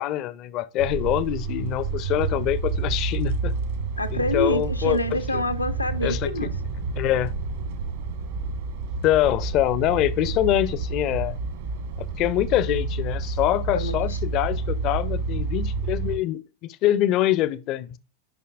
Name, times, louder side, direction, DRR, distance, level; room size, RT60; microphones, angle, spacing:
voice 1, 0.0-3.5 4.1-5.0 6.0-6.3 7.0-7.3 9.0-11.4 12.0-18.0, left 13 dB, 40° left, 0.5 m, -24 dB
sound 1, 0.8-16.2, right 4 dB, 55° right, 1.3 m, -29 dB
voice 2, 4.0-6.5 13.7-14.2, left 1 dB, 85° left, 0.7 m, -27 dB
9.5 x 5.6 x 2.4 m
figure-of-eight pair, 90°, 0 cm